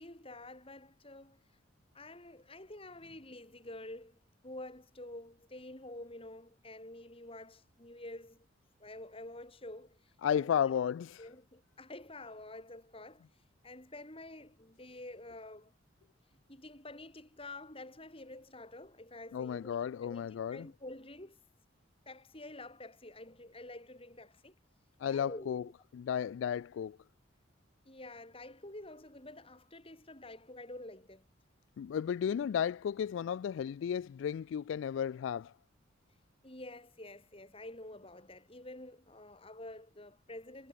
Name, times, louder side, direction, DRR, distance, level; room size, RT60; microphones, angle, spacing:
voice 1, 0.0-1.4 1.9-8.5 8.8-10.0 10.3-10.8 11.2-13.2 13.6-15.7 16.5-21.4 22.1-24.5 25.1-25.7 27.9-31.2 36.4-40.7, left 2 dB, 30° left, 5.7 m, -49 dB
voice 2, 10.2-11.2 19.3-20.7 25.0-25.6 25.9-27.0 31.8-35.5, left 8 dB, 80° left, 0.3 m, -33 dB
head